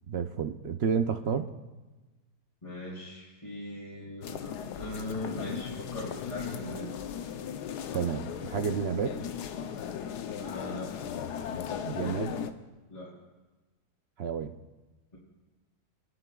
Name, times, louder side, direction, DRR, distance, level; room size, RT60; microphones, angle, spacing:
voice 1, 0.1-1.5 7.9-9.2 11.8-12.3 14.2-14.6, right 7 dB, 65° right, 7 dB, 0.6 m, -30 dB
voice 2, 2.6-6.9 10.3-11.1 12.9-13.1, left 1 dB, 25° left, -8 dB, 3.5 m, -40 dB
sound 1, 4.2-12.5, left 8 dB, 80° left, 1.3 m, -37 dB
27.0 x 11.5 x 2.3 m, 1.2 s
omnidirectional pair, 1.7 m